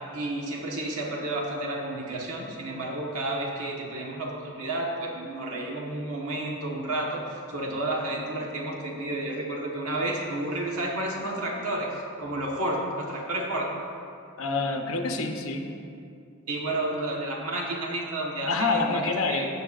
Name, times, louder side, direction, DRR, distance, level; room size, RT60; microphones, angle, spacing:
voice 1, 0.1-13.7 16.5-19.5, right 1 dB, 85° right, -1 dB, 1.3 m, -31 dB
voice 2, 14.4-15.7 18.5-19.5, left 3 dB, 70° left, 4 dB, 0.8 m, -27 dB
15.0 x 8.6 x 2.5 m, 2.5 s
head